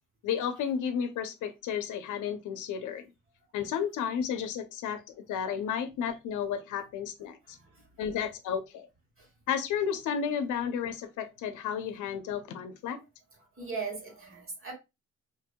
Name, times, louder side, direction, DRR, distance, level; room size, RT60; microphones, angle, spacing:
voice 1, 0.2-3.0 3.5-7.6 8.0-8.9 9.5-13.0, left 8 dB, 80° left, 0.6 m, -32 dB
voice 2, 13.6-14.7, right 4 dB, 45° right, 1.9 m, -39 dB
2.9 x 2.7 x 2.2 m
cardioid pair, 90°, 30 cm